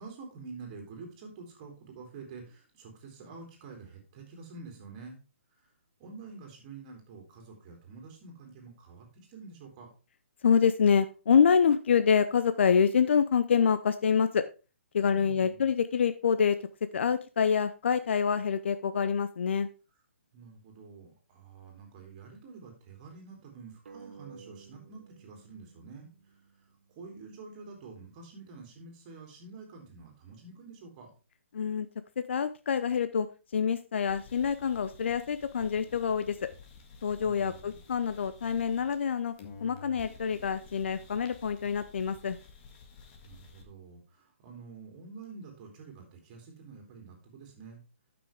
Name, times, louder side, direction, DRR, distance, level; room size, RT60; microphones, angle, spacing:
voice 1, 0.0-5.2 5.6-5.7 6.0-9.9 15.1-15.6 20.3-26.4 26.9-31.2 37.2-37.8 43.2-47.8, right 4 dB, 35° right, 2 dB, 3.2 m, -48 dB
voice 2, 10.4-14.4 14.9-16.6 16.9-19.7 31.5-31.9 32.2-33.3 33.5-36.4 37.0-39.3 39.6-42.4, left 6 dB, 60° left, 11 dB, 0.6 m, -26 dB
sound 1, 23.9-27.1, right 5 dB, 60° right, 1.3 m, -53 dB
sound 2, 34.1-39.1 39.4-43.6, left 4 dB, 35° left, 1.8 m, -52 dB
12.5 x 6.0 x 3.5 m, 0.33 s
figure-of-eight pair, 140°, 7 cm